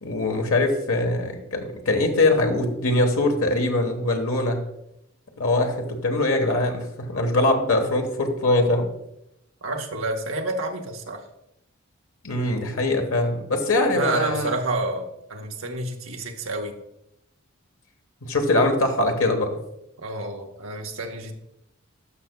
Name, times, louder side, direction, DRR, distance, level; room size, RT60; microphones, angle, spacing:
voice 1, 0.0-4.6 5.4-8.9 12.2-14.5 18.2-19.5, left 2 dB, 90° left, 4 dB, 1.2 m, -22 dB
voice 2, 9.6-11.2 13.9-16.7 20.0-21.3, right 2 dB, 75° right, 3 dB, 1.0 m, -29 dB
13.0 x 5.7 x 2.2 m, 0.82 s
head